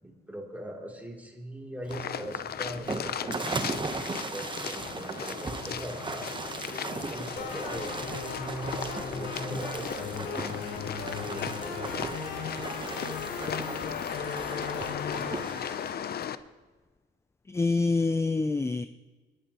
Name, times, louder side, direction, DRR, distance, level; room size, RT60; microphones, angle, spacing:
voice 1, 0.0-3.5 4.3-6.3 6.6-8.0 8.8-10.6 11.2-12.1, right 1 dB, 10° right, 2.9 m, -42 dB
Cannonball off dock splashing swimming, 1.8-15.9, right 3 dB, 25° right, 1.0 m, -38 dB
sound 1, 1.9-16.4, left 9 dB, 50° left, 0.6 m, -37 dB
sound 2, 7.4-15.4, left 4 dB, 65° left, 2.3 m, -37 dB
voice 2, 17.5-18.9, left 3 dB, 15° left, 0.4 m, -26 dB
27.5 x 10.0 x 3.0 m
cardioid pair, 90°, 20 cm